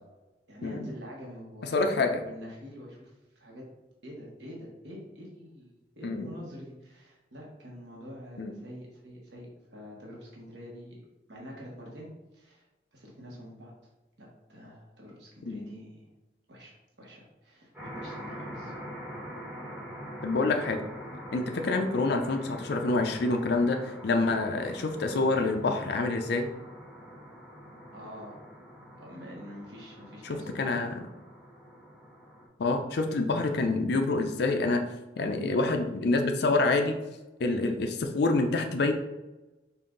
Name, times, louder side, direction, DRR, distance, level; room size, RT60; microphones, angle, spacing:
voice 1, 0.5-3.6 4.0-11.0 11.3-12.6 12.9-13.7 14.2-16.1 16.5-18.7 27.9-28.4 29.0-30.8, equal, 75° right, -3 dB, 1.3 m, -46 dB
voice 2, 1.7-2.2 6.0-6.3 8.4-8.5 15.5-15.6 20.2-20.8 21.3-26.5 30.2-31.0 32.6-34.8 35.2-37.0 37.4-38.9, left 3 dB, 65° left, 5 dB, 0.5 m, -27 dB
sound 1, 17.7-32.5, equal, 5° right, 1.6 m, -44 dB
5.5 x 2.5 x 3.8 m, 1.0 s
head